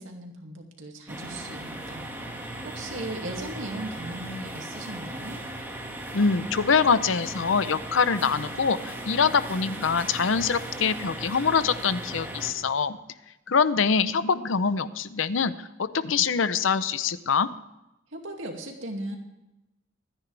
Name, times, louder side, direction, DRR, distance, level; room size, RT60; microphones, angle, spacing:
voice 1, 0.0-2.0 2.6-5.4 18.1-19.2, right 1 dB, 85° right, 2 dB, 2.3 m, -37 dB
sound 1, 1.1-12.5, right 1 dB, 10° right, 1.9 m, -37 dB
voice 2, 6.1-13.0 13.5-15.5 15.8-17.5, left 5 dB, 85° left, 14 dB, 0.7 m, -24 dB
25.5 x 9.9 x 3.4 m, 0.96 s
head